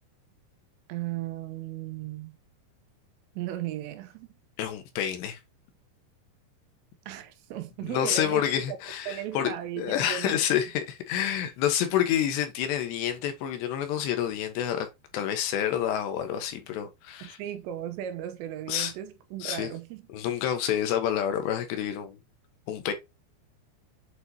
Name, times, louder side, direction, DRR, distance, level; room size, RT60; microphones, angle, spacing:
voice 1, 0.9-2.4 3.4-4.3 7.1-8.8 9.1-10.4 17.2-20.1, right 12 dB, 85° right, 2.8 m, -36 dB
voice 2, 4.6-5.4 7.8-14.9 15.1-17.4 18.7-18.9 19.4-19.7 20.1-22.2 22.7-22.9, left 10 dB, 75° left, 3.1 m, -28 dB
8.1 x 4.2 x 2.8 m
omnidirectional pair, 5.2 m